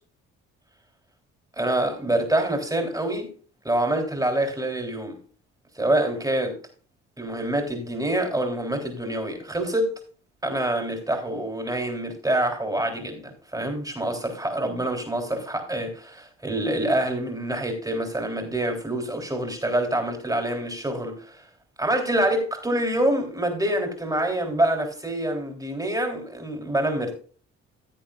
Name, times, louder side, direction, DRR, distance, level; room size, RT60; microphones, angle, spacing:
voice 1, 1.6-3.3 3.6-5.2 5.8-6.6 7.2-9.9 10.4-21.4 21.8-27.2, right 1 dB, 10° right, 3.5 m, -26 dB
15.0 x 8.8 x 2.4 m
cardioid pair, 90°, 30 cm